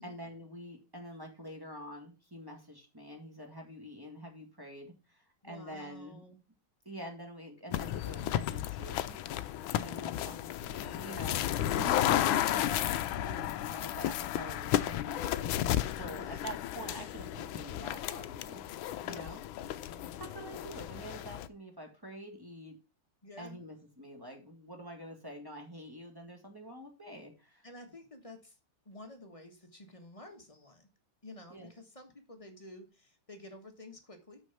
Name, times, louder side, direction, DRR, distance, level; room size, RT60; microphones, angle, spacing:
voice 1, 0.0-6.2 6.9-9.2 9.8-18.6 19.0-19.4 20.2-22.8 23.4-27.7 31.5-31.7, equal, 10° right, 2 dB, 1.7 m, -46 dB
voice 2, 5.4-6.4 10.2-10.5 16.2-16.4 19.0-19.4 19.9-20.1 23.2-23.6 27.6-28.6 28.8-30.9 31.2-34.4, left 1 dB, 20° left, 4 dB, 1.1 m, -51 dB
sound 1, 7.7-21.5, left 12 dB, 75° left, 1.3 m, -33 dB
6.4 x 6.2 x 5.7 m, 0.31 s
omnidirectional pair, 2.4 m